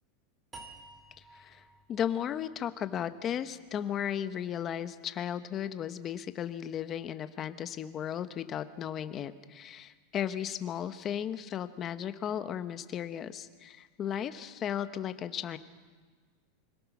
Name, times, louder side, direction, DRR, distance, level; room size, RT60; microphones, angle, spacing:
sound 1, 0.5-3.7, right 3 dB, 15° right, 2.3 m, -53 dB
voice 1, 1.3-1.6 1.9-15.6, left 9 dB, 25° left, 11 dB, 0.8 m, -35 dB
25.0 x 17.5 x 6.0 m, 1.5 s
supercardioid pair, 160°, 0 cm